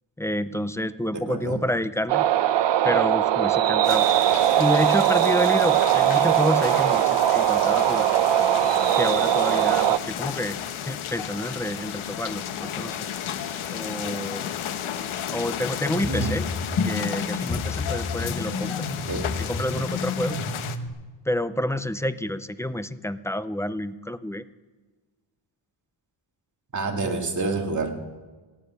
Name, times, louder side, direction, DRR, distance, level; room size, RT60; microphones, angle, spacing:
voice 1, 0.2-2.2 2.8-4.1 4.6-8.1 8.9-10.6 10.8-13.0 13.7-14.5 15.3-16.5 16.9-18.9 19.4-20.4 21.3-24.4, left 1 dB, 5° left, 13 dB, 0.4 m, -28 dB
voice 2, 1.1-1.6 16.1-16.4 19.1-19.3 26.7-27.9, right 3 dB, 35° right, 3 dB, 2.1 m, -28 dB
sound 1, 2.1-10.0, right 11 dB, 65° right, 0.7 m, -20 dB
sound 2, 3.8-20.8, left 9 dB, 90° left, 1.1 m, -33 dB
sound 3, 15.9-20.9, left 3 dB, 45° left, 2.0 m, -30 dB
17.5 x 8.4 x 9.5 m, 1.3 s
wide cardioid pair, 130°, 48 cm